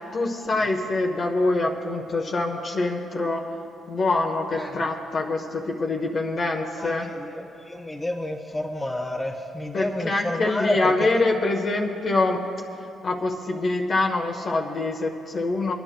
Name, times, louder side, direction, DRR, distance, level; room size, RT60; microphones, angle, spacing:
voice 1, 0.0-3.5 3.9-7.1 9.7-12.4 13.0-15.7, left 2 dB, 45° left, 1 dB, 1.1 m, -25 dB
voice 2, 7.2-10.9, left 1 dB, 15° left, -1 dB, 1.1 m, -29 dB
28.0 x 10.0 x 2.2 m, 2.7 s
cardioid pair, 90°, 0 cm